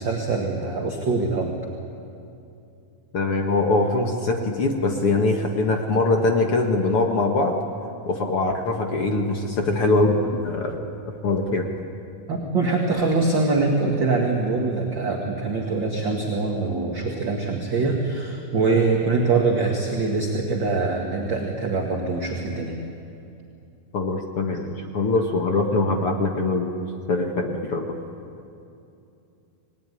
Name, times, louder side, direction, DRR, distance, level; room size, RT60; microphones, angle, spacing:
voice 1, 0.0-1.5 12.3-22.7, right 3 dB, 40° right, 0 dB, 2.4 m, -23 dB
voice 2, 3.1-7.6 8.1-10.8 11.2-11.7 23.9-26.7 27.1-28.0, left 2 dB, 50° left, 3 dB, 2.0 m, -22 dB
27.0 x 19.5 x 10.0 m, 2.7 s
omnidirectional pair, 3.9 m